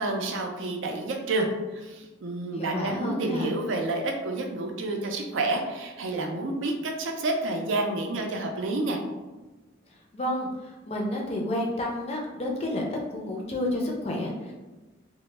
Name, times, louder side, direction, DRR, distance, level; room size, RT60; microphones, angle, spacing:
voice 1, 0.0-1.5 1.7-9.0, right 2 dB, 80° right, 2 dB, 0.4 m, -29 dB
voice 2, 2.5-3.5 10.1-12.8 13.1-14.5, left 1 dB, 30° left, -1 dB, 0.4 m, -30 dB
2.1 x 2.0 x 3.1 m, 1.2 s
head